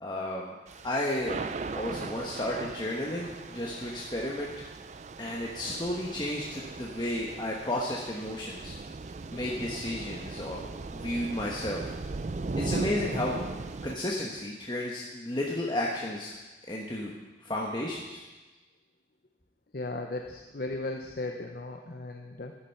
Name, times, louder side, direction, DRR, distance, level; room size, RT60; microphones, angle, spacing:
voice 1, 0.0-0.5 0.8-4.5 5.2-8.7 9.3-11.9 12.6-13.4 13.8-16.3 16.7-17.2 17.4-18.2, left 1 dB, 25° left, -2 dB, 1.2 m, -33 dB
Thunder / Rain, 0.7-14.0, right 3 dB, 40° right, 0.4 m, -38 dB
voice 2, 19.7-22.5, left 2 dB, 55° left, 3 dB, 0.8 m, -36 dB
13.5 x 9.9 x 5.8 m, 1.2 s
head